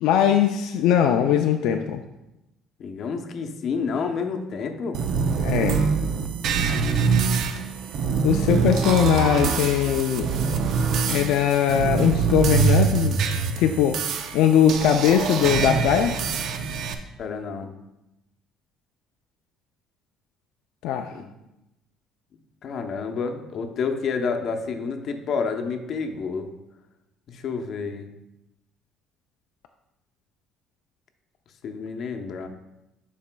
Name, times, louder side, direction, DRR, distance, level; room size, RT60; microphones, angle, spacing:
voice 1, 0.0-2.0 5.4-5.9 8.2-10.3 11.1-13.2 13.6-16.2 20.8-21.1, left 9 dB, 80° left, 4 dB, 0.3 m, -20 dB
voice 2, 2.8-5.0 17.2-17.7 21.1-21.3 22.6-26.5 27.3-28.1 31.6-32.5, left 5 dB, 50° left, 5 dB, 0.7 m, -29 dB
sound 1, 4.9-16.9, right 6 dB, 60° right, 0.5 m, -24 dB
11.5 x 4.2 x 2.2 m, 0.94 s
cardioid pair, 135°, 0 cm